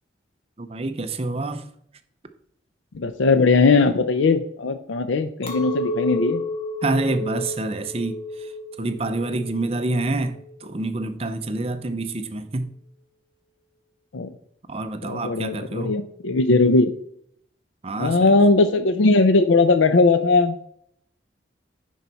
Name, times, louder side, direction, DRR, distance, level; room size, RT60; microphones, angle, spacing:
voice 1, 0.6-1.7 6.8-8.5 8.8-12.7 14.7-16.0 17.8-18.4, right 2 dB, 30° right, 0.6 m, -27 dB
voice 2, 2.9-6.4 14.1-14.3 15.1-16.9 18.0-20.5, left 3 dB, 90° left, 0.5 m, -19 dB
Chink clink, 5.4-10.8, left 1 dB, 30° left, 1.3 m, -31 dB
10.0 x 4.5 x 4.1 m
head